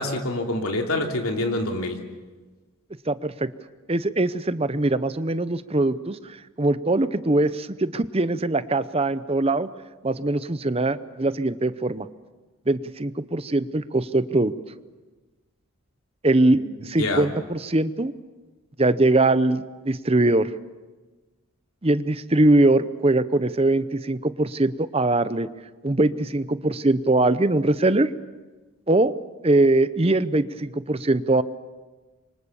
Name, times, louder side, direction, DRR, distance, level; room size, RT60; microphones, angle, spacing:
voice 1, 0.0-2.0 16.5-16.6 17.0-17.3, left 2 dB, 80° left, 3 dB, 3.1 m, -26 dB
voice 2, 3.1-3.5 3.9-9.7 10.0-12.1 12.7-14.5 16.2-18.1 18.8-20.5 21.8-25.5 25.8-28.1 28.9-29.1 29.4-31.4, right 2 dB, 25° right, 14 dB, 0.7 m, -22 dB
26.5 x 24.5 x 7.1 m, 1.3 s
head